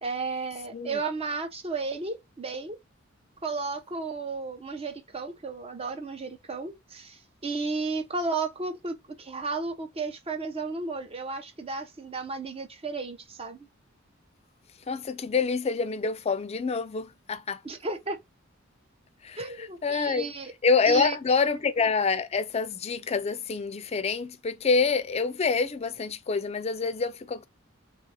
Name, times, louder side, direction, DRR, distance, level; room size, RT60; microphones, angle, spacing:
voice 1, 0.0-2.8 3.4-13.7 17.6-18.2 19.4-20.5 20.9-21.2, right 3 dB, 30° right, 0.7 m, -33 dB
voice 2, 14.9-17.6 19.2-20.3 20.6-27.4, left 4 dB, 30° left, 0.4 m, -27 dB
3.4 x 2.6 x 4.0 m
head